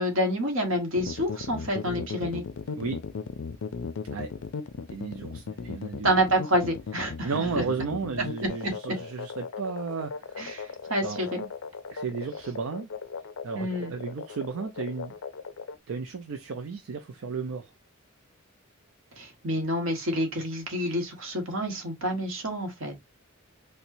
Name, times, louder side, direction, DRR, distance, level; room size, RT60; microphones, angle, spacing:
voice 1, 0.0-2.4 6.0-7.6 8.6-8.7 10.4-11.5 13.5-13.9 19.2-23.0, equal, 70° right, 1.2 m, -28 dB
sound 1, 0.9-15.8, left 5 dB, 75° left, 0.4 m, -37 dB
voice 2, 4.9-6.1 7.2-10.4 11.0-11.2 11.9-12.9 13.4-15.1 15.9-17.7, right 5 dB, 85° right, 0.5 m, -34 dB
4.3 x 2.1 x 2.6 m
head